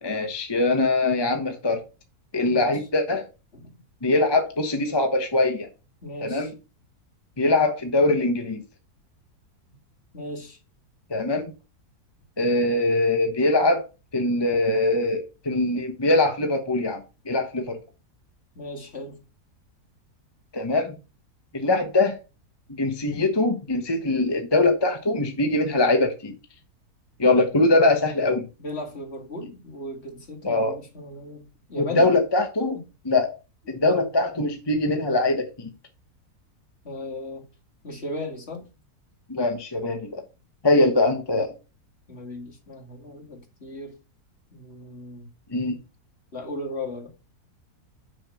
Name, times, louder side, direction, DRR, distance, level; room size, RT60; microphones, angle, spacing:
voice 1, 0.0-1.8 2.3-3.2 4.0-5.7 6.2-6.5 7.4-8.6 11.1-11.5 12.4-13.9 14.1-17.0 17.3-17.8 20.5-21.0 21.5-22.2 22.8-26.3 27.2-28.5 30.4-30.8 31.8-32.8 33.0-33.3 33.7-35.7 39.3-40.2 40.6-41.5 45.5-45.8, left 2 dB, 20° left, 0.9 m, -22 dB
voice 2, 2.5-2.8 3.5-3.7 6.0-6.5 10.1-10.6 18.6-19.2 28.6-31.4 31.7-32.0 33.8-34.0 36.8-37.4 37.8-38.6 40.8-40.9 42.1-43.9 44.5-45.3 46.3-47.1, left 1 dB, 40° left, 2.3 m, -36 dB
6.3 x 5.9 x 6.2 m
omnidirectional pair, 1.7 m